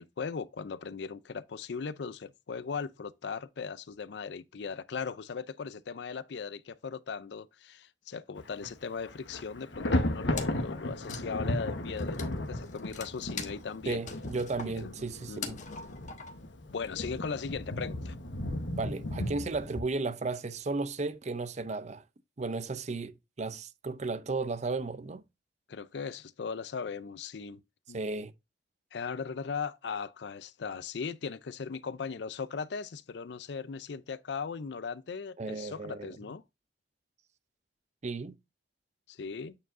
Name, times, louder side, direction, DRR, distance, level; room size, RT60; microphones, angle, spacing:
voice 1, 0.0-14.0 14.8-14.9 15.3-15.6 16.7-18.2 25.7-27.6 27.9-28.0 28.9-36.4 39.1-39.6, left 5 dB, 70° left, 0.5 m, -38 dB
Thunder, 8.4-8.7 9.0-19.8, left 1 dB, 85° left, 1.1 m, -35 dB
Wood, 10.3-10.7 11.0-16.6, left 5 dB, 45° left, 1.2 m, -43 dB
voice 2, 13.9-15.6 18.8-22.0 22.4-25.2 27.9-28.3 35.4-36.1 38.0-38.4, right 3 dB, 40° right, 0.5 m, -34 dB
8.6 x 4.7 x 2.6 m
head